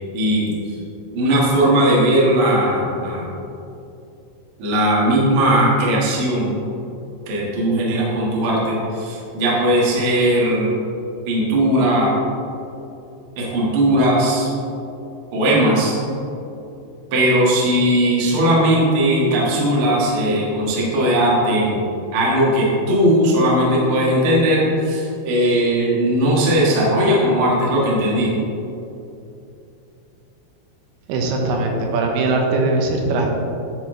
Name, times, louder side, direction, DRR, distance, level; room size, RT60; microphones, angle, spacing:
voice 1, 0.1-0.8 1.1-3.3 4.6-6.6 7.3-10.7 11.3-12.1 13.3-14.5 15.3-16.0 17.1-21.7 22.1-28.3, right 1 dB, 65° right, -5 dB, 1.3 m, -18 dB
voice 2, 31.1-33.3, right 3 dB, 85° right, 1 dB, 3.3 m, -20 dB
12.0 x 4.6 x 3.8 m, 2.8 s
omnidirectional pair, 5.1 m